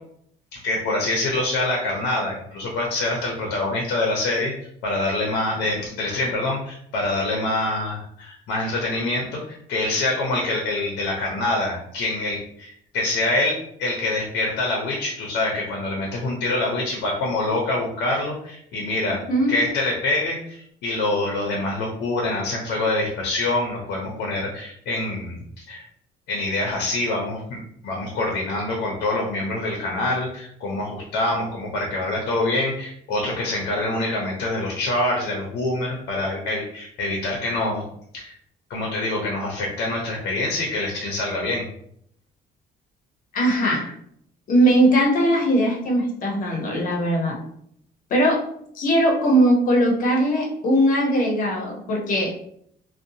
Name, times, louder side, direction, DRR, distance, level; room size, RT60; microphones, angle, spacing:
voice 1, 0.5-4.5 4.8-19.2 19.5-25.8 26.3-27.6 27.8-37.8 38.1-38.3 38.7-41.6, left 2 dB, 85° left, -1 dB, 0.6 m, -25 dB
voice 2, 43.3-43.9 44.5-47.4 48.1-48.4 48.7-52.3, right 1 dB, 55° left, 0 dB, 0.8 m, -20 dB
2.5 x 2.2 x 2.7 m, 0.70 s
cardioid pair, 110°, 17 cm